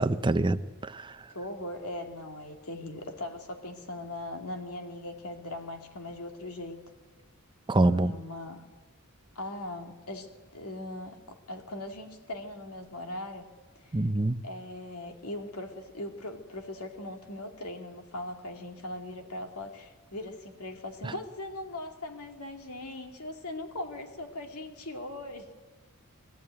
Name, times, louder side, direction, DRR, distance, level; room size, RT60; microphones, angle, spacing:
voice 1, 0.0-1.2 7.7-8.1 13.9-14.4 21.0-21.1, right 2 dB, 20° right, 12 dB, 0.6 m, -26 dB
voice 2, 1.3-6.9 7.7-8.6 9.4-13.5 13.8-14.0 14.4-25.4, left 1 dB, 85° left, 4 dB, 2.5 m, -40 dB
21.5 x 14.5 x 8.9 m, 1.3 s
head